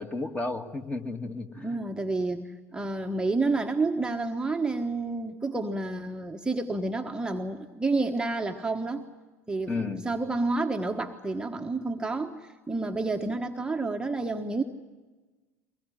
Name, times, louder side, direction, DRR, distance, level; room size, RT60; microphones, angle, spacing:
voice 1, 0.0-1.8 9.7-10.0, left 3 dB, 15° left, 5 dB, 2.0 m, -33 dB
voice 2, 1.6-9.0 9.5-14.6, right 3 dB, 10° right, 4 dB, 1.3 m, -29 dB
23.5 x 20.5 x 9.8 m, 1.3 s
figure-of-eight pair, 75°, 9 cm